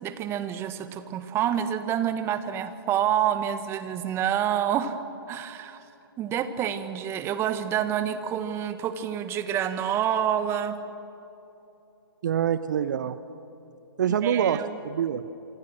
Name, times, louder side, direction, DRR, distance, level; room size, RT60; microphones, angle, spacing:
voice 1, 0.0-5.0 5.3-5.8 6.2-10.8 14.2-14.8, right 10 dB, 20° right, 11 dB, 1.5 m, -28 dB
voice 2, 12.2-13.2 14.0-15.2, right 9 dB, 50° right, 13 dB, 0.9 m, -25 dB
27.0 x 26.0 x 6.4 m, 3.0 s
figure-of-eight pair, 125°, 12 cm